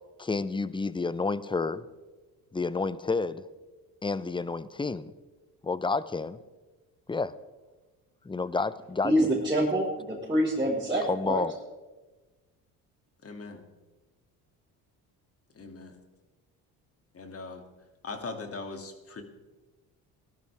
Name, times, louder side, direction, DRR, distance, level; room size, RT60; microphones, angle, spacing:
voice 1, 0.2-1.8 2.5-3.4 4.0-5.1 5.6-6.4 7.1-7.3 8.2-9.1 11.1-11.5, left 4 dB, 15° left, 16 dB, 0.7 m, -30 dB
voice 2, 9.0-11.4, equal, 15° right, -8 dB, 4.4 m, -26 dB
voice 3, 13.2-13.6 15.5-16.0 17.1-17.6 18.0-19.2, left 3 dB, 40° left, 5 dB, 2.5 m, -40 dB
19.0 x 12.5 x 3.5 m, 1.2 s
supercardioid pair, 75°, 37 cm